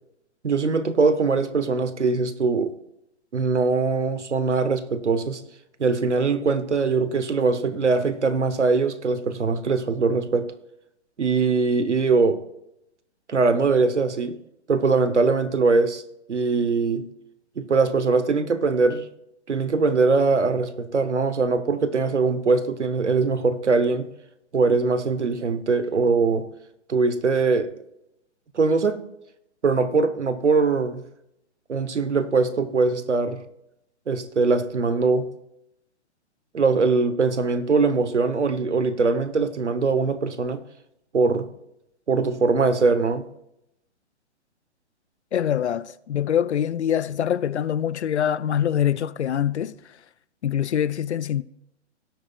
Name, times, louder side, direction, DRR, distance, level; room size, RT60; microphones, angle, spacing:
voice 1, 0.4-2.7 3.3-5.4 5.8-10.5 11.2-12.4 13.3-14.4 14.7-16.0 16.3-17.1 17.6-19.1 19.5-24.1 24.5-26.5 26.9-27.7 28.5-29.0 29.6-31.0 31.7-33.4 34.1-35.3 36.5-40.6 41.1-41.5 42.1-43.3, right 4 dB, 80° right, 1.0 m, -22 dB
voice 2, 45.3-49.7 50.4-51.4, left 9 dB, 75° left, 0.5 m, -24 dB
18.0 x 8.5 x 2.3 m
figure-of-eight pair, 125°, 34 cm